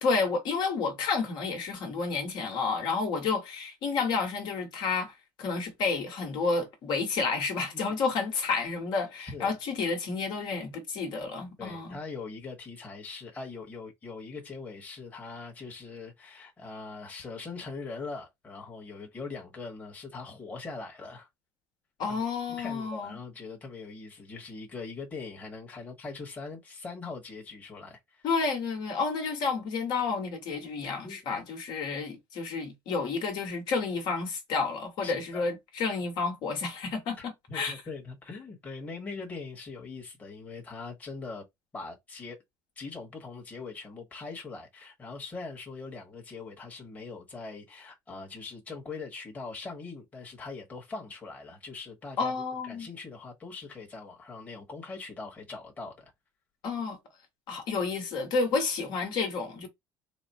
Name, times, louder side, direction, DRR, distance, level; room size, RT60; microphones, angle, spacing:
voice 1, 0.0-12.0 22.0-23.2 28.2-37.8 52.2-52.9 56.6-57.0 57.5-59.7, left 4 dB, 55° left, 1.3 m, -30 dB
voice 2, 9.2-9.5 11.6-21.3 22.1-22.2 22.6-28.2 31.0-31.4 35.0-35.5 37.2-41.4 41.7-42.4 42.8-52.3 52.6-56.1, left 4 dB, 15° left, 1.2 m, -41 dB
4.1 x 2.1 x 4.2 m
cardioid pair, 145°, 9 cm